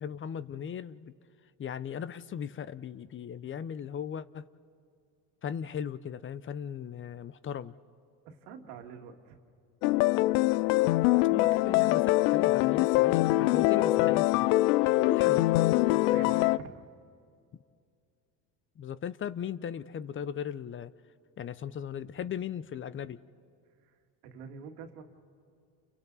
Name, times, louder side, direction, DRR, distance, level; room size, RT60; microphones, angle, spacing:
voice 1, 0.0-1.1 1.6-4.5 5.4-7.7 11.3-14.5 15.0-15.5 18.8-20.9 21.4-23.2, left 8 dB, 30° left, 16 dB, 0.6 m, -37 dB
voice 2, 8.2-9.4 16.1-16.8 23.8-24.0 24.2-25.0, right 6 dB, 80° right, 4 dB, 2.1 m, -46 dB
sound 1, 9.8-16.6, left 18 dB, 80° left, 0.5 m, -24 dB
30.0 x 29.5 x 4.1 m, 2.3 s
supercardioid pair, 95°, 43 cm